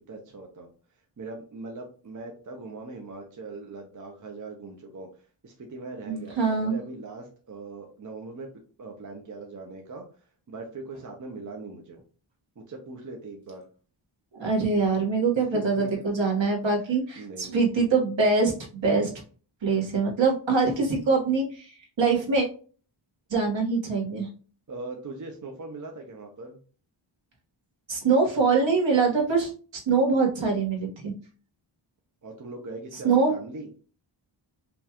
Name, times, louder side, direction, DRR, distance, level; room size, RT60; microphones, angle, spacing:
voice 1, 0.1-0.7 1.2-8.5 8.8-10.0 10.5-12.0 12.6-13.6 15.3-16.0 16.7-16.9 17.2-17.6 24.7-26.6 32.2-33.7, right 3 dB, 40° right, 2 dB, 0.7 m, -40 dB
voice 2, 6.1-6.8 14.4-18.5 18.8-19.1 19.6-21.7 22.0-22.5 23.3-24.3 27.9-29.5 29.9-31.1 33.0-33.3, right 4 dB, 65° right, 0 dB, 1.4 m, -23 dB
5.2 x 2.3 x 2.9 m, 0.39 s
wide cardioid pair, 125°, 49 cm